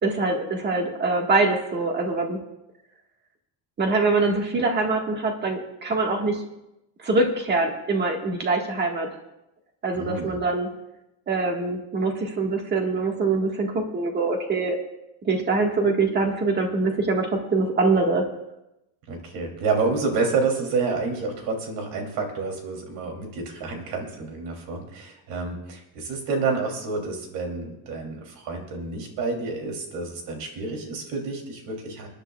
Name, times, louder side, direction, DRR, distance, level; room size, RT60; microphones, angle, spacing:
voice 1, 0.0-2.4 3.8-6.4 7.0-9.1 9.8-10.7 11.3-14.8 15.2-18.2, right 3 dB, 25° right, 2 dB, 1.6 m, -24 dB
voice 2, 9.9-10.3 19.1-32.1, right 4 dB, 85° right, 2 dB, 3.1 m, -29 dB
28.0 x 10.0 x 2.4 m, 0.90 s
cardioid pair, 180°, 39 cm